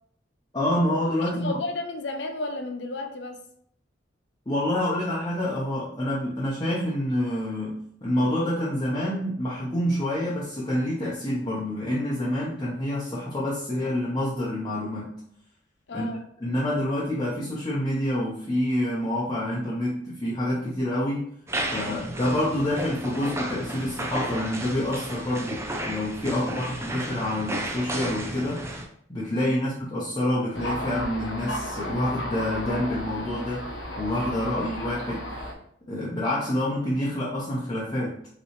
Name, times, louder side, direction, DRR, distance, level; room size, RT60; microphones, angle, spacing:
voice 1, 0.5-1.6 4.5-15.2 15.9-16.1 16.4-21.3 21.7-28.7 29.1-33.7 34.0-35.3 35.9-38.2, left 1 dB, 20° left, -7 dB, 0.8 m, -27 dB
voice 2, 1.2-3.4 15.9-16.2 21.8-22.1 26.3-26.6 29.4-29.6 34.3-34.6, left 2 dB, 65° left, 5 dB, 0.6 m, -34 dB
sound 1, 21.5-28.8, right 1 dB, 15° right, 0.5 m, -33 dB
Thunder, 30.5-35.5, left 1 dB, 85° left, 1.0 m, -34 dB
5.5 x 3.1 x 3.1 m, 0.66 s
head